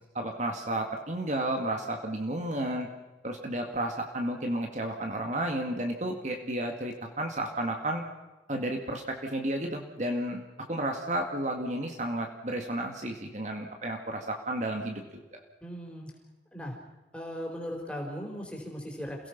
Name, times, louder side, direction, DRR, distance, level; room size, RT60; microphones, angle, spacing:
voice 1, 0.1-2.9 3.2-8.0 8.5-10.4 10.7-15.4, right 1 dB, 40° right, 3 dB, 2.1 m, -32 dB
voice 2, 15.6-16.1 16.5-16.8 17.1-19.3, equal, 5° left, 0 dB, 4.4 m, -38 dB
28.5 x 17.5 x 6.0 m, 1.1 s
head